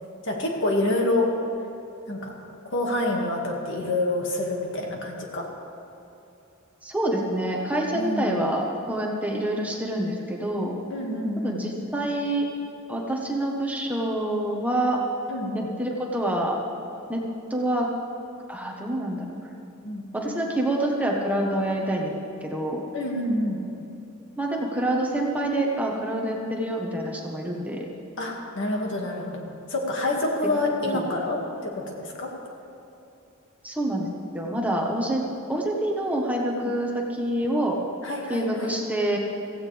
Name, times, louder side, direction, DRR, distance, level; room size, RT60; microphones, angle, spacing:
voice 1, 0.2-1.3 2.1-2.3 2.7-5.5 7.9-8.4 10.9-11.6 15.3-15.7 19.8-20.1 22.9-23.6 28.2-32.3 36.5-36.7 38.0-38.7, left 2 dB, 60° left, 0 dB, 2.1 m, -27 dB
voice 2, 6.8-10.8 11.4-12.5 12.9-15.0 15.5-16.6 17.1-17.2 17.5-17.9 18.5-19.3 20.1-22.1 22.4-22.8 24.4-27.9 30.8-31.2 33.6-35.2 35.5-37.8 38.3-39.2, right 1 dB, 5° right, -1 dB, 1.3 m, -27 dB
16.0 x 16.0 x 3.5 m, 2.9 s
head